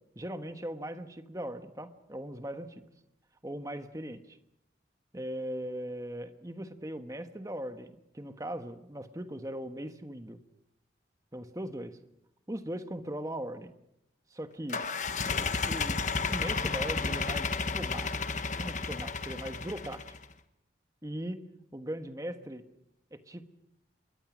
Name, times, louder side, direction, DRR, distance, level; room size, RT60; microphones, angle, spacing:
voice 1, 0.1-2.9 3.4-4.2 5.1-10.4 11.3-12.0 12.5-13.7 14.3-14.8 15.4-18.1 18.6-20.0 21.0-21.4 21.7-22.6 23.1-23.4, right 1 dB, 20° right, 8 dB, 1.3 m, -39 dB
sound 1, 14.7-20.2, left 4 dB, 40° left, 1.2 m, -32 dB
27.5 x 22.0 x 6.2 m, 0.84 s
head